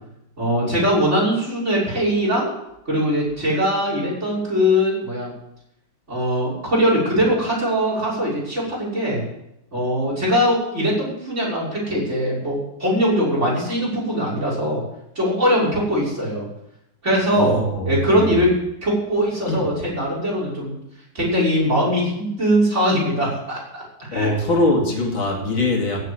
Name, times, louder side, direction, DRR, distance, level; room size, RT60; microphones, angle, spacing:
voice 1, 0.4-2.5 2.8-5.3 6.1-9.2 9.7-14.8 15.1-16.5 17.0-18.5 18.8-20.8 21.1-24.3, equal, 30° right, -4 dB, 6.5 m, -21 dB
voice 2, 17.3-18.4 19.5-19.7 24.1-26.0, left 2 dB, 70° left, -1 dB, 3.3 m, -22 dB
15.5 x 7.7 x 8.7 m, 0.83 s
omnidirectional pair, 2.3 m